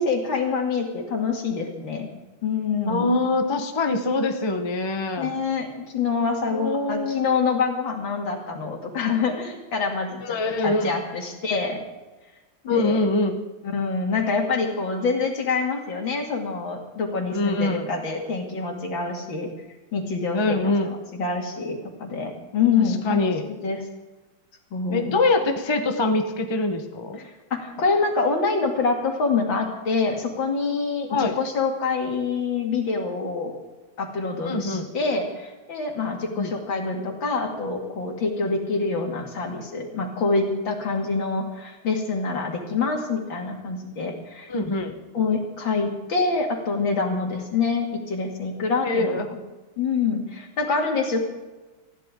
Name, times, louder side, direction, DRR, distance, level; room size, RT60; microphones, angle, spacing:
voice 1, 0.0-2.1 2.4-3.1 5.2-10.4 10.6-11.8 12.6-13.0 13.6-19.5 19.9-20.6 20.8-23.9 24.7-25.2 27.2-33.6 34.0-44.5 45.1-49.4 49.8-51.2, left 4 dB, 60° left, 2 dB, 3.0 m, -26 dB
voice 2, 2.9-5.3 6.2-7.2 10.2-10.9 12.7-13.4 17.3-17.9 20.3-20.9 23.0-23.4 24.9-27.2 31.1-31.4 34.4-34.9 36.4-36.5 44.5-45.0 48.8-49.2, left 2 dB, 25° left, 5 dB, 0.6 m, -24 dB
20.0 x 14.5 x 3.8 m, 1.2 s
omnidirectional pair, 2.4 m